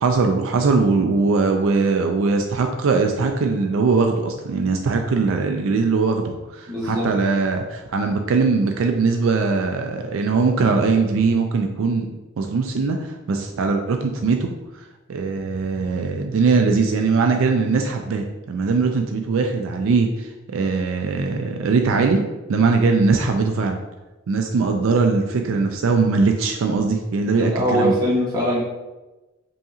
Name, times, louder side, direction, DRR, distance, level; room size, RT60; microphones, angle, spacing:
voice 1, 0.0-12.1 12.4-22.2 22.5-23.8 24.3-27.9, right 4 dB, 70° right, 4 dB, 0.4 m, -21 dB
voice 2, 6.7-7.1 27.4-28.6, equal, 20° right, -6 dB, 1.1 m, -21 dB
5.3 x 2.8 x 2.4 m, 1.1 s
head